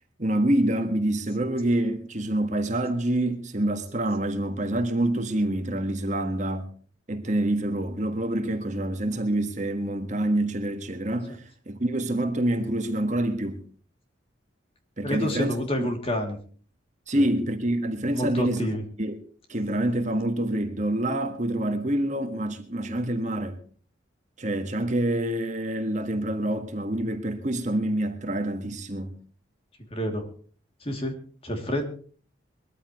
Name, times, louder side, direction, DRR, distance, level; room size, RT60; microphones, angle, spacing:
voice 1, 0.2-6.7 7.1-13.6 15.0-15.9 17.1-18.7 19.0-19.2 19.5-23.6 24.4-29.1, right 1 dB, 40° right, 1.6 m, -26 dB
voice 2, 15.0-16.4 17.1-17.3 18.1-18.8 29.9-30.3 30.8-31.9, equal, 30° left, 3.0 m, -29 dB
22.5 x 14.0 x 3.2 m
head